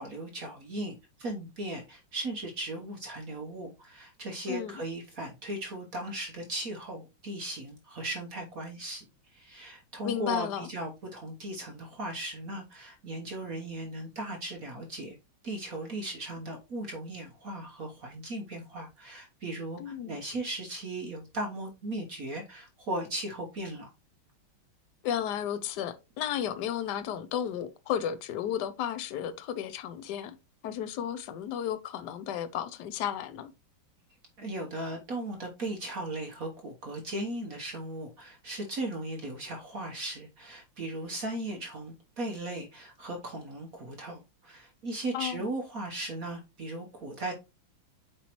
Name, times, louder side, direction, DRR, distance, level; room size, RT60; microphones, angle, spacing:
voice 1, 0.0-9.0 9.3-15.2 15.4-23.9 34.4-47.3, right 1 dB, 50° right, 1.3 m, -37 dB
voice 2, 4.5-4.8 10.0-10.7 19.8-20.2 25.0-30.4 30.6-33.5 45.1-45.4, left 9 dB, 65° left, 1.2 m, -33 dB
8.2 x 4.5 x 3.0 m
omnidirectional pair, 2.2 m